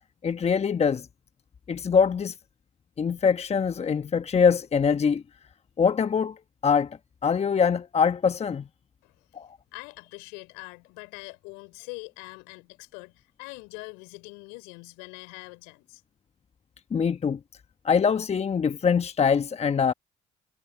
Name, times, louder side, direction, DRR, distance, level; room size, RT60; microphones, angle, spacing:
voice 1, 0.2-1.1 1.7-2.3 3.0-5.2 5.8-6.4 6.6-7.0 7.2-8.7 9.3-9.5 16.9-17.4 17.8-19.9, left 6 dB, 35° left, 1.2 m, -23 dB
voice 2, 9.0-9.4 9.7-16.0, left 31 dB, 75° left, 5.9 m, -43 dB
hypercardioid pair, 50°, 17 cm